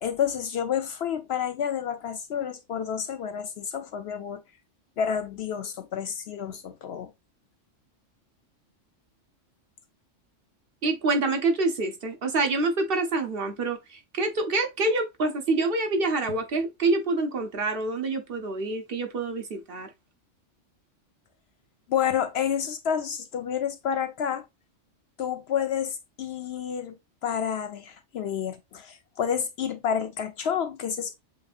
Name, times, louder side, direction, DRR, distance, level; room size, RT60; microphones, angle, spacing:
voice 1, 0.0-4.4 5.0-7.1 21.9-24.4 25.2-26.9 27.2-31.2, left 8 dB, 65° left, 0.7 m, -29 dB
voice 2, 10.8-19.9, right 3 dB, 50° right, 1.0 m, -26 dB
7.4 x 2.6 x 2.4 m
omnidirectional pair, 1.3 m